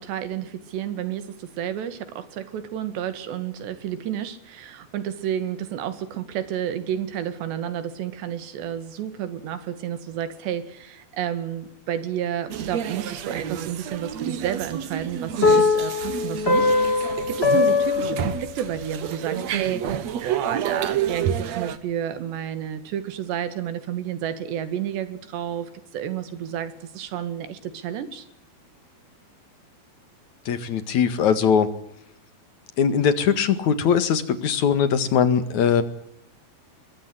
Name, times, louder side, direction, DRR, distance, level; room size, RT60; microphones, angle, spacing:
voice 1, 0.0-28.3, right 10 dB, 85° right, 4.3 m, -31 dB
sound 1, 12.5-21.8, right 9 dB, 60° right, 1.9 m, -29 dB
sound 2, 15.4-18.9, left 4 dB, 20° left, 2.2 m, -21 dB
voice 2, 30.5-31.7 32.8-35.8, left 7 dB, 55° left, 2.8 m, -21 dB
23.0 x 22.0 x 9.7 m
omnidirectional pair, 4.8 m